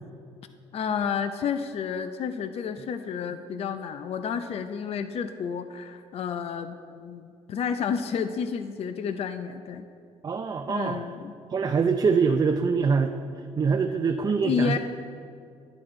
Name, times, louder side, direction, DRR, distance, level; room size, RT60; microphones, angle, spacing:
voice 1, 0.7-9.9 10.7-11.3 14.4-14.8, left 7 dB, 55° left, 9 dB, 0.5 m, -30 dB
voice 2, 10.2-11.0 11.5-13.2 13.6-14.8, right 5 dB, 30° right, 5 dB, 0.5 m, -24 dB
10.5 x 9.7 x 3.8 m, 2.3 s
cardioid pair, 100°, 12 cm